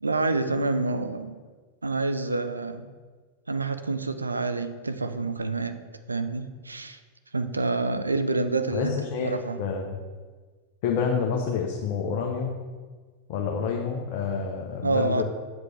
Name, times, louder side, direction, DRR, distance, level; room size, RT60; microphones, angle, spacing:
voice 1, 0.0-1.4 1.8-2.8 3.5-5.8 6.1-7.0 7.3-9.6 14.8-15.2, right 3 dB, 80° right, 10 dB, 0.5 m, -27 dB
voice 2, 8.7-10.0 10.8-12.5 13.3-15.2, left 6 dB, 45° left, 0 dB, 0.9 m, -28 dB
7.9 x 7.1 x 3.3 m, 1.4 s
figure-of-eight pair, 90°, 0 cm